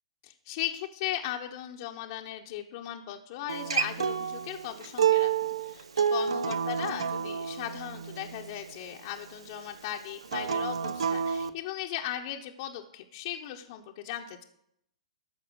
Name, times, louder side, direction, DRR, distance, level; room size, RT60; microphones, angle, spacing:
voice 1, 0.2-14.4, left 12 dB, 50° left, 2 dB, 0.9 m, -37 dB
Acoustic guitar, 3.5-8.7 10.2-11.5, right 7 dB, 75° right, 0.6 m, -29 dB
13.5 x 5.4 x 6.3 m, 0.77 s
hypercardioid pair, 115°, 3 cm